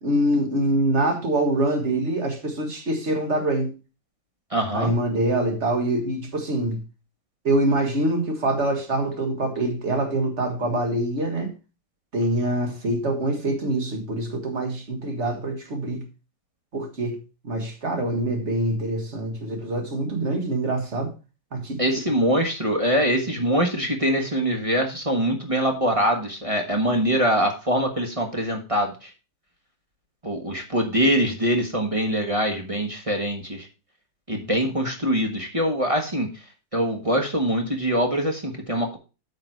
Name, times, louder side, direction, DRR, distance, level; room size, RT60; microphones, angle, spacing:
voice 1, 0.0-3.7 4.7-6.8 7.4-11.5 12.1-16.0 16.7-17.2 17.4-21.1 21.5-21.8, right 1 dB, 35° right, 1.8 m, -25 dB
voice 2, 4.5-4.9 21.8-29.1 30.2-33.7 34.3-36.3 36.7-39.0, equal, 20° right, 1.1 m, -23 dB
8.4 x 5.9 x 4.7 m
omnidirectional pair, 2.2 m